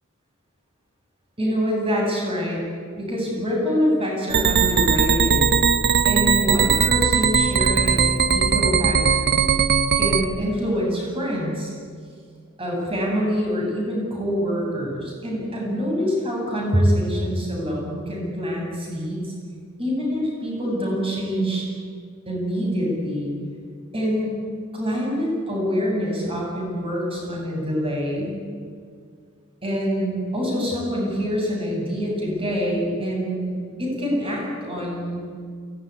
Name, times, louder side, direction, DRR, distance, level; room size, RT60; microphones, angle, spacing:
voice 1, 1.4-2.6 3.0-5.5 6.0-9.0 10.0-11.7 12.6-19.3 19.8-21.6 22.3-23.3 23.9-24.4 24.7-28.4 29.6-35.2, equal, 25° right, -2 dB, 7.9 m, -25 dB
sound 1, 4.3-10.3, right 6 dB, 55° right, 1.1 m, -19 dB
22.5 x 18.5 x 9.9 m, 2.1 s
head